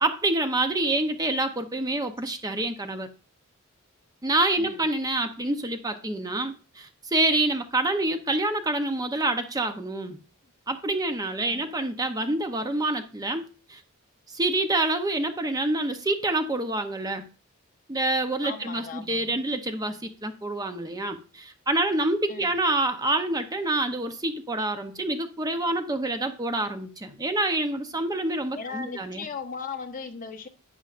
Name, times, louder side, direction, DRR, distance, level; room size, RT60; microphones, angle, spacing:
voice 1, 0.0-3.1 4.2-10.2 10.7-13.8 14.3-17.3 17.9-29.3, right 2 dB, 15° right, 0.6 m, -27 dB
voice 2, 18.4-19.4 22.3-22.5 28.5-30.5, left 5 dB, 40° left, 1.1 m, -37 dB
11.0 x 8.7 x 2.5 m
head